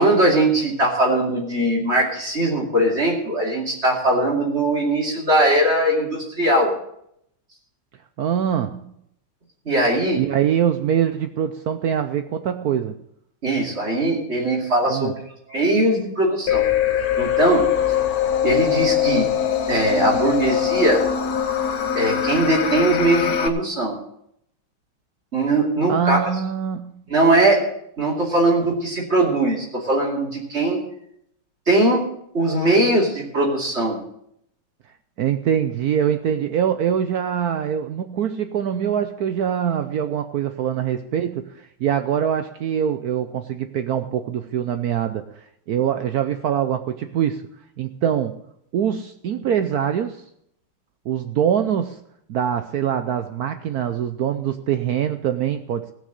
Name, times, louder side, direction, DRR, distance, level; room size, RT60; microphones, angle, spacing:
voice 1, 0.0-6.7 9.7-10.2 13.4-15.1 15.5-16.6 17.2-17.6 18.4-19.3 19.7-21.0 21.9-24.0 25.3-26.2 27.1-27.6 28.0-30.8 31.7-32.1 32.3-34.0, right 1 dB, 30° right, -1 dB, 2.8 m, -20 dB
voice 2, 8.2-8.8 10.2-12.9 14.9-15.1 25.9-26.9 35.2-45.3 45.7-47.4 47.8-48.4 48.7-50.2 51.1-52.0 52.3-55.9, right 9 dB, 80° right, 9 dB, 0.8 m, -23 dB
sound 1, 16.5-23.5, left 9 dB, 55° left, 1.2 m, -22 dB
16.5 x 6.2 x 7.9 m, 0.74 s
omnidirectional pair, 2.3 m